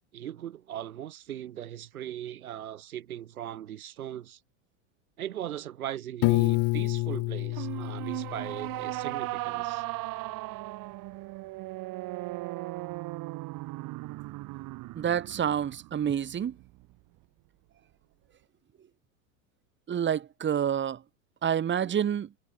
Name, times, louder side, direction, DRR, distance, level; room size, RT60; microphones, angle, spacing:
voice 1, 0.1-4.4 5.2-9.8 21.8-22.0, right 11 dB, 85° right, 5.0 m, -39 dB
Piano, 6.2-9.1, left 23 dB, 45° left, 1.1 m, -28 dB
sound 1, 7.5-16.9, right 20 dB, 50° right, 7.9 m, -37 dB
voice 2, 14.9-16.6 19.9-21.0 21.4-22.3, right 9 dB, 25° right, 2.6 m, -28 dB
hypercardioid pair, 105°, 42 cm